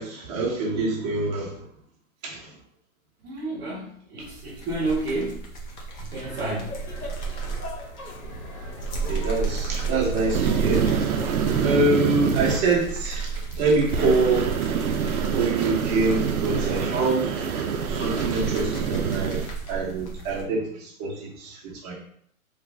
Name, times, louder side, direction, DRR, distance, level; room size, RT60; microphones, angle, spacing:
voice 1, 0.0-1.7 2.2-2.5 9.1-10.9 11.6-14.5 15.3-19.4 19.7-21.9, right 3 dB, 30° right, -4 dB, 1.2 m, -25 dB
voice 2, 3.2-5.5 6.1-6.8, right 2 dB, 10° right, -11 dB, 0.5 m, -30 dB
sound 1, 4.2-20.4, right 5 dB, 30° left, 0.8 m, -33 dB
Laughter, 6.2-11.3, left 1 dB, 90° left, 1.3 m, -38 dB
sound 2, 10.3-12.6 13.9-19.5, right 7 dB, 90° right, 0.7 m, -26 dB
3.3 x 2.4 x 3.3 m, 0.67 s
hypercardioid pair, 145°, 42 cm